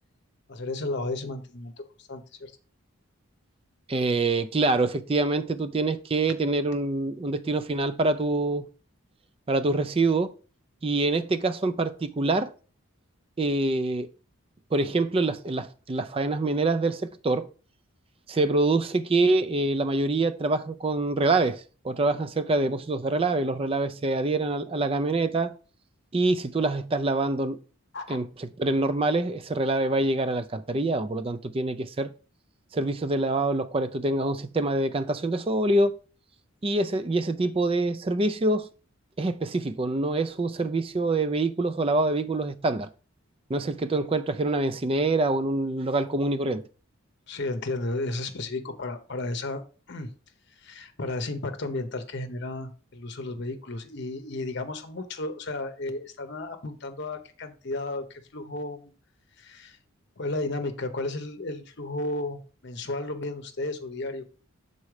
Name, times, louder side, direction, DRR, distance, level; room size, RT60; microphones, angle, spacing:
voice 1, 0.5-1.8 2.1-2.5 27.9-28.2 47.3-49.6 49.9-50.1 50.6-58.9 59.4-59.8 60.2-64.3, left 2 dB, 50° left, 0.8 m, -33 dB
voice 2, 3.9-8.7 9.5-10.3 10.8-12.5 13.4-14.1 14.7-17.5 18.3-25.5 26.1-27.6 28.1-32.1 32.7-36.0 36.6-38.7 39.2-42.9 43.5-46.6, right 2 dB, 25° right, 0.4 m, -25 dB
6.1 x 4.2 x 4.8 m
head